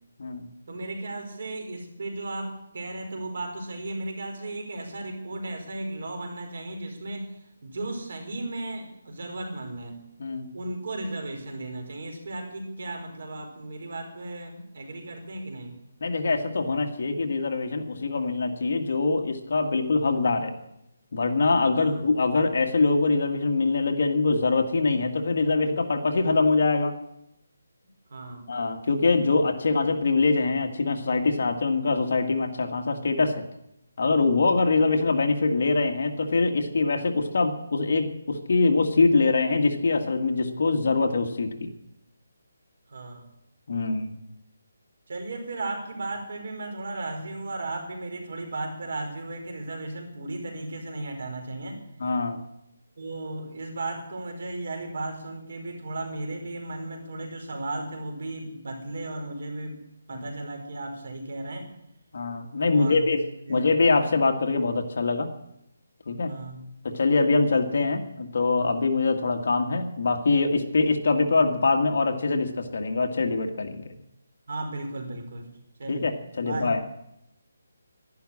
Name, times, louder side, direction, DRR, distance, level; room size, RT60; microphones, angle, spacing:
voice 1, 0.6-10.0 10.5-15.8 21.7-22.0 28.1-28.5 34.5-34.8 42.9-43.2 45.1-51.8 53.0-59.8 60.1-61.7 62.7-63.2 63.4-63.7 66.3-66.6 74.5-75.5 75.8-76.1 76.4-76.7, right 2 dB, 50° right, 3 dB, 4.7 m, -35 dB
voice 2, 16.0-20.5 21.1-27.0 28.5-33.4 34.0-41.7 43.7-44.1 52.0-52.4 60.1-60.2 62.1-63.2 63.5-65.3 66.1-66.3 66.8-73.9 75.9-76.8, left 3 dB, 50° left, 4 dB, 1.9 m, -24 dB
12.0 x 11.5 x 9.9 m, 0.82 s
hypercardioid pair, 175°, 0 cm